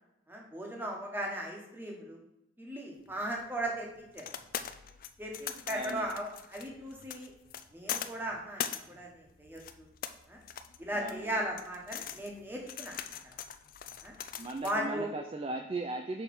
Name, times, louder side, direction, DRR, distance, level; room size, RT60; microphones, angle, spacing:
voice 1, 0.3-2.2 2.6-4.2 5.2-7.3 7.7-9.9 10.3-10.4 10.8-13.0 14.0-14.1 14.6-15.1, right 1 dB, 10° right, -1 dB, 1.2 m, -37 dB
sound 1, 3.1-14.8, left 9 dB, 45° left, 0.4 m, -42 dB
voice 2, 5.7-6.1 10.9-11.4 14.3-16.2, right 2 dB, 25° right, 5 dB, 0.3 m, -38 dB
6.4 x 5.1 x 4.2 m, 0.85 s
head